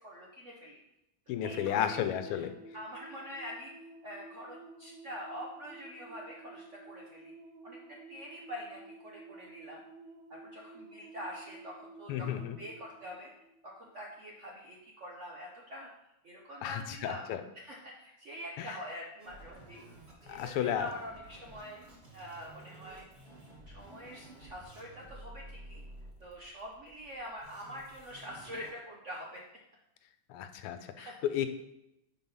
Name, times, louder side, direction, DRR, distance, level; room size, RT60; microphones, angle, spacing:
voice 1, 0.0-0.8 1.4-2.0 2.3-2.5 2.7-3.7 4.0-7.3 7.6-9.8 10.3-13.3 13.6-15.9 16.2-17.2 17.5-19.8 20.3-21.8 22.1-23.1 23.7-25.8 26.2-29.4 30.8-31.2, equal, 55° right, -2 dB, 0.8 m, -45 dB
voice 2, 1.3-2.5 12.1-12.6 16.6-17.4 18.6-18.8 20.3-20.9 30.3-31.5, left 10 dB, 85° left, 9 dB, 1.6 m, -33 dB
sound 1, 1.4-13.9, right 2 dB, 75° right, 1.5 m, -52 dB
sound 2, 19.2-28.7, right 1 dB, 30° right, 2.1 m, -52 dB
5.5 x 4.8 x 5.5 m, 0.86 s
omnidirectional pair, 2.4 m